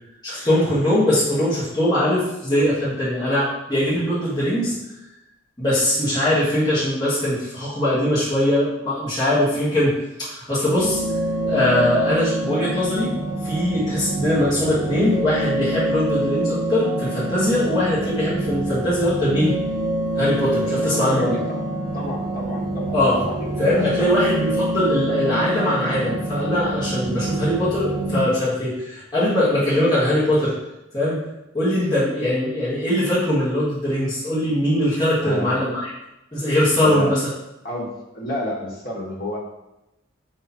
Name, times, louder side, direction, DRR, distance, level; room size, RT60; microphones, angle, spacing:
voice 1, 0.2-4.7 5.6-11.0 11.4-13.1 13.4-19.6 20.1-21.4 22.9-23.2 23.6-30.5 30.9-31.2 31.5-35.9 36.3-37.2, left 1 dB, 20° left, -10 dB, 1.6 m, -21 dB
sound 1, 10.8-28.2, right 1 dB, 15° right, 1.4 m, -26 dB
voice 2, 20.6-21.6 21.9-24.2 35.2-35.6 36.8-37.2 37.6-39.4, left 1 dB, 50° left, -4 dB, 1.7 m, -30 dB
5.3 x 4.3 x 4.3 m, 0.91 s
head